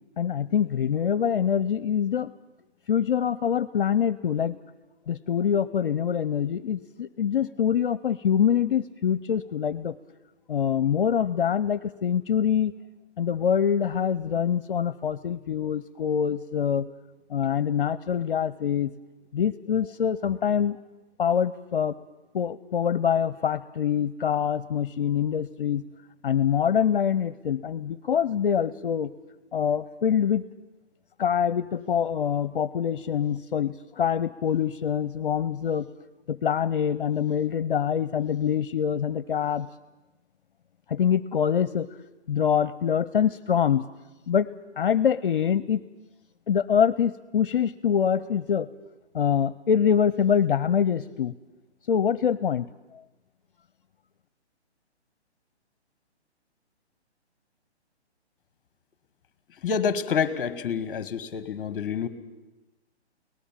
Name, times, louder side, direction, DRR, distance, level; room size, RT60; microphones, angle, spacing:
voice 1, 0.2-2.3 2.9-4.6 5.1-9.9 10.5-12.7 13.2-16.9 17.3-18.9 19.3-20.8 21.2-21.9 22.3-25.8 26.2-29.1 29.5-30.4 31.2-35.9 36.3-39.7 40.9-41.9 42.3-43.8 44.3-44.5 44.8-45.8 46.5-48.7 49.1-51.3 51.9-52.7, left 8 dB, 50° left, 18 dB, 0.6 m, -25 dB
voice 2, 59.6-62.1, left 6 dB, 20° left, 14 dB, 1.2 m, -27 dB
23.0 x 18.5 x 7.4 m, 1.1 s
hypercardioid pair, 170°, 34 cm